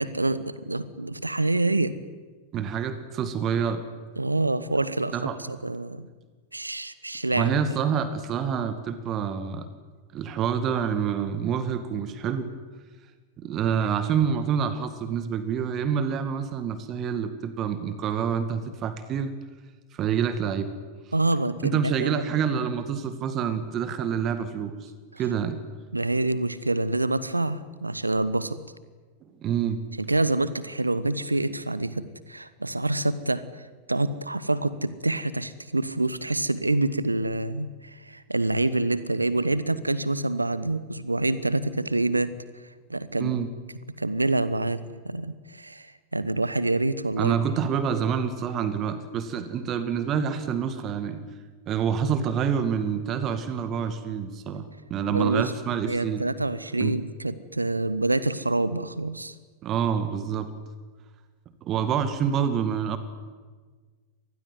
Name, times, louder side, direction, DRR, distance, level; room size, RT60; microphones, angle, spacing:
voice 1, 0.0-1.9 4.2-5.2 5.5-6.1 6.5-7.8 21.1-22.2 25.9-28.6 30.0-42.3 42.9-43.4 44.0-47.4 55.1-55.5 55.9-59.3, right 2 dB, 85° right, 16 dB, 1.3 m, -27 dB
voice 2, 2.5-3.8 5.1-5.4 7.3-9.7 10.1-12.5 13.4-19.3 19.9-20.7 21.6-24.9 25.2-25.6 29.4-29.8 43.2-43.5 47.2-51.2 51.7-56.2 56.8-57.0 59.6-60.5 61.6-63.0, right 7 dB, 30° right, 11 dB, 2.1 m, -27 dB
25.5 x 20.5 x 9.4 m, 1.4 s
figure-of-eight pair, 90°, 0 cm